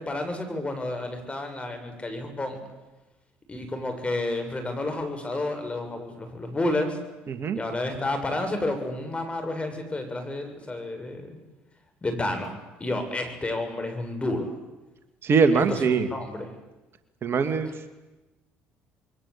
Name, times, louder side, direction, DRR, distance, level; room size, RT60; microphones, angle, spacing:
voice 1, 0.0-2.6 3.5-7.0 7.6-11.4 12.0-14.5 15.5-16.5, left 2 dB, 20° left, 6 dB, 7.4 m, -30 dB
voice 2, 7.3-7.6 15.2-16.1 17.2-17.7, right 5 dB, 45° right, 9 dB, 2.2 m, -22 dB
27.0 x 22.5 x 8.6 m, 1.1 s
supercardioid pair, 70°, 5 cm